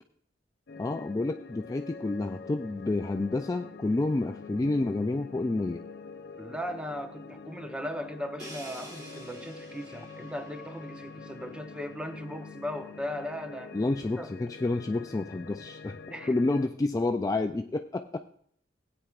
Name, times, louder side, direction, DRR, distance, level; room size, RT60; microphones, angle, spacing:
sound 1, 0.7-16.7, left 4 dB, 65° left, 0.6 m, -46 dB
voice 1, 0.8-5.8 13.7-16.0 16.3-18.2, left 2 dB, 20° left, 6 dB, 0.3 m, -29 dB
voice 2, 6.4-13.8 14.2-14.3 16.1-16.3, equal, 5° right, 6 dB, 0.7 m, -37 dB
Crash cymbal, 8.4-12.2, right 1 dB, 20° right, 2.1 m, -49 dB
16.5 x 9.0 x 2.4 m, 0.64 s
head